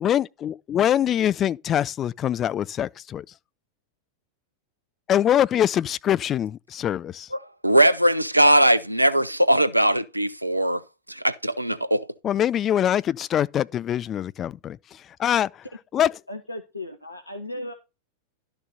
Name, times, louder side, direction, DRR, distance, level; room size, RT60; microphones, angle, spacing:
voice 1, 0.0-3.3 5.1-7.3 12.2-15.7 15.9-16.1, left 10 dB, 30° left, 0.4 m, -24 dB
voice 2, 7.6-10.8 11.1-12.1, right 1 dB, 85° right, 0.7 m, -20 dB
voice 3, 16.3-17.7, left 1 dB, 85° left, 1.1 m, -36 dB
12.0 x 6.5 x 4.1 m
figure-of-eight pair, 90°, 0 cm